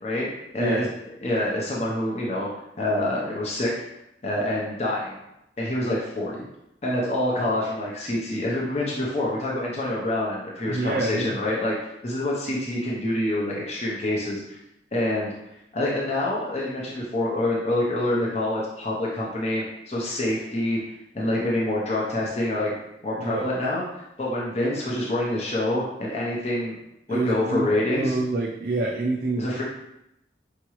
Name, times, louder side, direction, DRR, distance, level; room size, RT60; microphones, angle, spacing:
voice 1, 0.5-0.9 1.2-2.5 2.8-3.7 4.2-5.2 5.6-6.4 6.8-14.4 14.9-15.3 15.7-20.8 21.1-22.7 23.0-26.8 27.1-28.2 29.4-29.6, left 1 dB, 35° left, -4 dB, 0.7 m, -26 dB
voice 2, 10.7-11.4 23.2-23.5 27.1-27.7 27.9-29.4, right 2 dB, 55° right, -1 dB, 0.4 m, -26 dB
4.6 x 2.9 x 3.0 m, 0.87 s
head